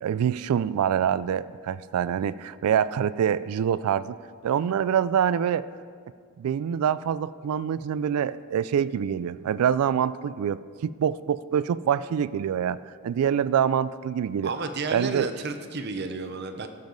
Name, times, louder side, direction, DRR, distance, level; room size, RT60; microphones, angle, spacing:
voice 1, 0.0-4.1 4.4-5.7 6.4-12.8 13.0-14.5 14.9-15.3, right 8 dB, 85° right, 16 dB, 0.3 m, -25 dB
voice 2, 14.4-16.7, right 3 dB, 50° right, 8 dB, 0.7 m, -32 dB
16.5 x 7.2 x 3.9 m, 2.1 s
head